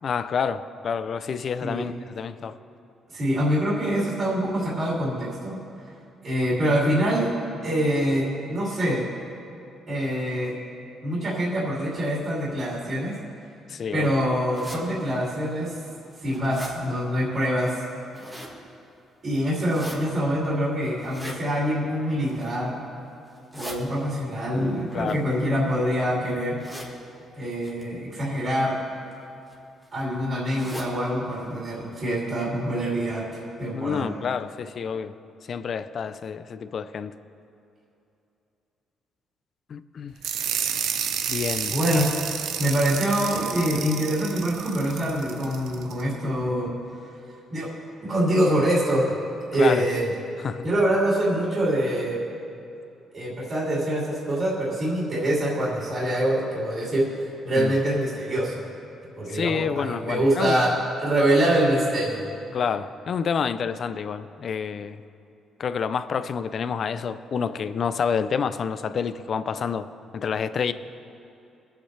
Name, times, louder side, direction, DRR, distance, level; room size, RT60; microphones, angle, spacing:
voice 1, 0.0-2.6 13.7-14.1 24.9-25.2 33.7-35.1 35.5-37.2 39.7-40.1 41.3-42.0 49.6-49.9 50.4-50.7 57.5-57.7 59.3-60.6 62.5-65.0 65.6-69.9 70.1-70.7, left 6 dB, 45° left, 13 dB, 0.4 m, -28 dB
voice 2, 3.1-5.6 6.2-7.3 7.6-9.0 9.9-10.5 11.0-13.1 13.9-15.8 16.2-17.8 19.2-22.8 23.5-26.6 27.4-28.8 29.9-34.1 41.7-42.1 42.6-46.7 47.5-47.7 48.0-49.2 49.5-50.1 50.6-52.2 53.1-58.6 59.2-60.7 61.0-62.3, right 1 dB, 35° right, -7 dB, 2.9 m, -25 dB
sound 1, 14.5-14.8 15.5-15.6 16.0-16.7 17.9-18.6 19.5-20.0 21.0-21.4 22.1-22.6 23.3-23.8 24.9-25.9 26.6-26.9 27.6-27.8 28.8-29.1 29.5-29.6 29.8-29.9 30.5-30.9 31.3-31.4 31.7-31.8 32.4-32.5 32.8-32.9, equal, 5° right, 1.6 m, -40 dB
sound 2, 40.2-46.0, right 8 dB, 90° right, 0.7 m, -30 dB
24.0 x 8.2 x 3.3 m, 2.7 s
cardioid pair, 145°, 0 cm